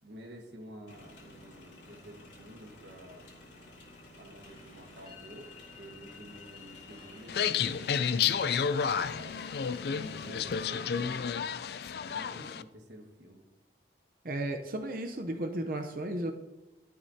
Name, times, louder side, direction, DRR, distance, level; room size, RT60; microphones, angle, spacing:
voice 1, 0.0-3.3 4.2-9.4 9.9-11.3 12.1-13.4, right 1 dB, 70° right, 2 dB, 1.6 m, -50 dB
sound 1, 0.9-10.7, left 1 dB, 80° left, 2.9 m, -53 dB
sound 2, 4.4-10.8, left 6 dB, 35° left, 2.4 m, -54 dB
sound 3, 7.3-12.6, left 7 dB, 60° left, 0.4 m, -31 dB
voice 2, 14.2-16.3, right 1 dB, 50° right, 5 dB, 0.7 m, -34 dB
12.5 x 11.5 x 2.8 m, 1.0 s
head